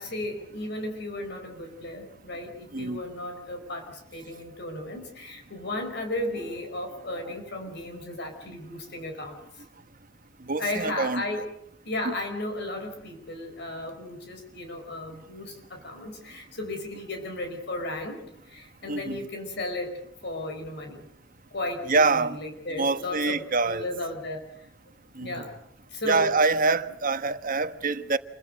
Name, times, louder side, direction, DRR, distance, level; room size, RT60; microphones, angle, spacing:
voice 1, 0.0-9.6 10.6-11.4 11.8-18.2 18.4-21.1 21.5-24.7 25.2-25.5 25.9-26.3, left 1 dB, 60° left, 4.8 m, -35 dB
voice 2, 10.4-11.2 12.0-12.1 18.9-19.2 21.9-22.4 22.8-23.9 25.1-25.3 26.1-28.2, right 3 dB, 45° right, 1.3 m, -25 dB
28.0 x 23.5 x 6.5 m
head